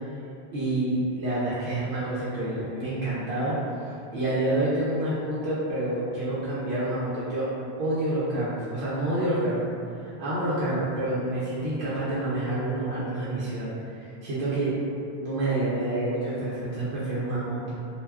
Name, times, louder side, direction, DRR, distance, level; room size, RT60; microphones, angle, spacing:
voice 1, 0.5-7.5 7.8-9.7 10.0-14.7 15.1-17.8, right 1 dB, 85° right, -10 dB, 0.9 m, -28 dB
2.4 x 2.2 x 3.3 m, 2.6 s
omnidirectional pair, 1.1 m